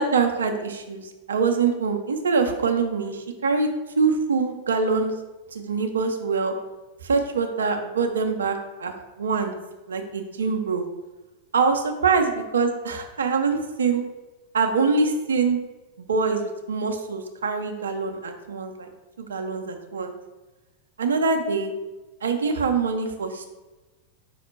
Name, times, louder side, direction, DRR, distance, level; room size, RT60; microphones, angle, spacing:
voice 1, 0.0-3.7 4.0-5.1 5.5-6.5 7.0-9.5 9.9-10.9 11.5-14.0 14.5-15.6 16.0-18.9 19.2-20.1 21.0-21.7 22.2-23.5, right 4 dB, 70° right, 5 dB, 0.5 m, -24 dB
5.3 x 2.1 x 4.5 m, 1.1 s
figure-of-eight pair, 90°, 0 cm